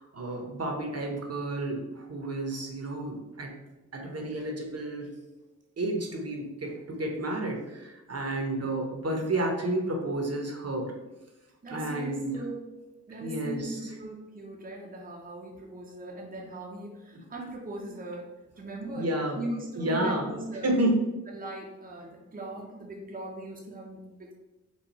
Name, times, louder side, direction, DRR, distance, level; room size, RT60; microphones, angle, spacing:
voice 1, 0.0-3.5 3.9-5.1 5.8-10.9 11.7-12.4 13.2-13.8 19.0-19.4 19.8-20.3 20.6-21.0, right 1 dB, 50° right, 2 dB, 0.9 m, -31 dB
voice 2, 11.6-12.6 13.1-18.3 18.6-19.1 19.4-20.7 21.3-24.3, right 1 dB, 25° right, -2 dB, 0.7 m, -39 dB
4.4 x 2.4 x 4.1 m, 1.0 s
cardioid pair, 75°, 32 cm